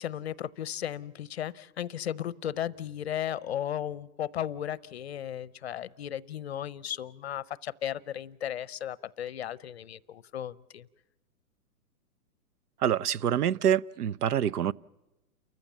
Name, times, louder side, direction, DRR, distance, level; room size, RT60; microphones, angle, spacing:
voice 1, 0.0-10.9, left 10 dB, 45° left, 0.6 m, -35 dB
voice 2, 12.8-14.7, right 9 dB, 75° right, 0.7 m, -26 dB
30.0 x 14.5 x 7.3 m
hypercardioid pair, 155°, 47 cm